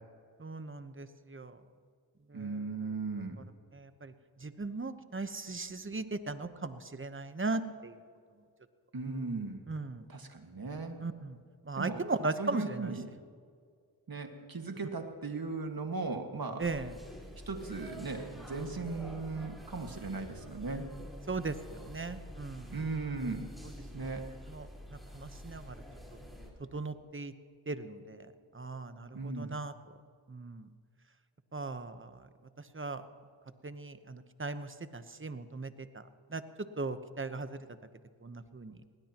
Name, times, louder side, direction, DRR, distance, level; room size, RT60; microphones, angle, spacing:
voice 1, 0.4-1.6 2.3-2.5 3.7-4.1 4.4-7.9 9.7-10.0 11.0-11.4 11.7-12.9 16.6-16.9 21.3-22.7 24.5-24.7 25.1-25.8 26.7-27.3 27.7-28.2 28.5-29.7 30.3-30.7 31.5-32.1 32.7-33.0 33.6-36.0 36.3-36.4 36.8-37.6 38.2-38.7, right 3 dB, 25° right, 11 dB, 1.0 m, -37 dB
voice 2, 2.3-3.4 8.9-9.6 10.1-11.0 11.8-12.0 12.4-13.1 14.1-16.7 17.5-20.9 22.7-23.5 23.9-24.3 29.1-29.6, right 3 dB, 50° right, 5 dB, 1.9 m, -37 dB
sound 1, 16.6-26.5, equal, ahead, 4.3 m, -47 dB
20.0 x 19.0 x 3.0 m, 2.1 s
cardioid pair, 45°, 46 cm